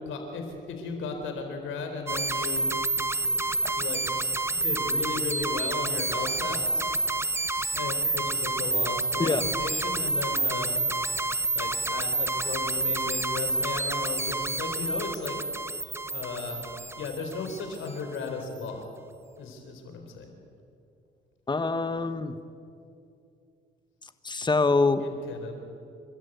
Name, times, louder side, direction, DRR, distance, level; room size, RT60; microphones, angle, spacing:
voice 1, 0.1-2.7 3.7-4.0 4.5-6.9 7.7-10.7 11.5-15.4 16.1-16.6 17.0-18.9 19.4-20.3 25.0-25.5, left 4 dB, 80° left, 4 dB, 4.3 m, -35 dB
sound 1, 2.1-17.9, right 2 dB, 15° right, 0.9 m, -29 dB
voice 2, 21.5-22.4 24.2-25.0, left 3 dB, 20° left, 11 dB, 1.3 m, -25 dB
29.5 x 13.5 x 8.2 m, 2.5 s
cardioid pair, 90°, 20 cm